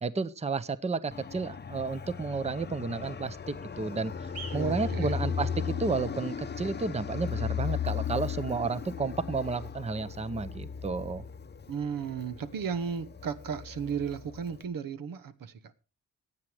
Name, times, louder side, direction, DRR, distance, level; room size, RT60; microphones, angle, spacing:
voice 1, 0.0-4.1 4.5-11.2, right 4 dB, 20° right, 0.6 m, -32 dB
Fixed-wing aircraft airplane, 1.1-14.6, left 7 dB, 30° left, 0.7 m, -36 dB
sound 1, 4.2-10.1, right 4 dB, 50° right, 3.6 m, -53 dB
voice 2, 4.5-5.2 11.7-15.7, right 6 dB, 85° right, 1.1 m, -35 dB
16.0 x 9.0 x 4.8 m
wide cardioid pair, 145°, 33 cm